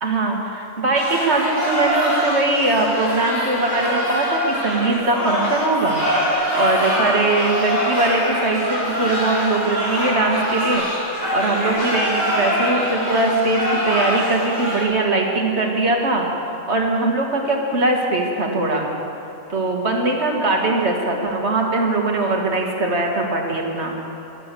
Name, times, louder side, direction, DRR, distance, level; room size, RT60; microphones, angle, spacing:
voice 1, 0.0-6.0 6.5-10.8 11.3-16.3 16.7-18.9 19.5-23.9, right 2 dB, 55° right, 0 dB, 2.1 m, -21 dB
sound 1, 0.9-14.8, equal, 70° left, 4.5 m, -23 dB
22.5 x 8.3 x 6.9 m, 2.9 s
omnidirectional pair, 1.4 m